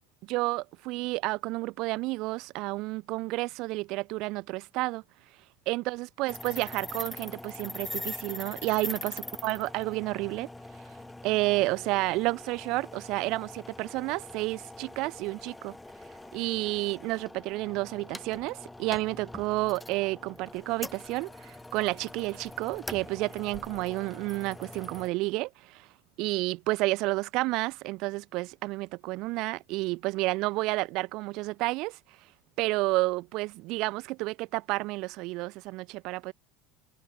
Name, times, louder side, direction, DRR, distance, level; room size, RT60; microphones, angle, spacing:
voice 1, 0.3-5.0 5.7-9.2 9.4-10.5 11.2-15.8 16.3-25.9 26.2-32.0 32.6-36.3, right 22 dB, 55° right, 0.9 m, -30 dB
sound 1, 6.3-25.1, left 2 dB, 5° left, 2.6 m, -43 dB
cardioid pair, 160°, 0 cm